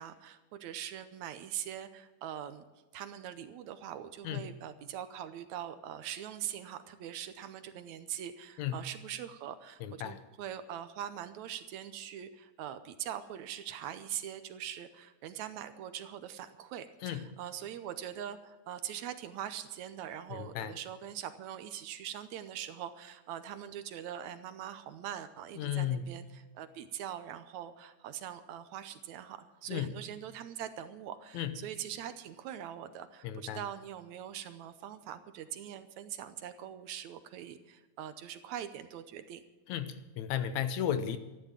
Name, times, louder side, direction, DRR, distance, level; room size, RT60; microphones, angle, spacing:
voice 1, 0.0-2.6 2.9-39.4, right 10 dB, 75° right, 11 dB, 2.0 m, -42 dB
voice 2, 9.8-10.2 17.0-17.4 20.3-20.8 25.6-26.1 29.7-30.0 31.3-31.6 33.2-33.6 39.7-41.2, left 9 dB, 75° left, 11 dB, 2.0 m, -34 dB
13.5 x 11.5 x 7.3 m, 1.2 s
omnidirectional pair, 3.5 m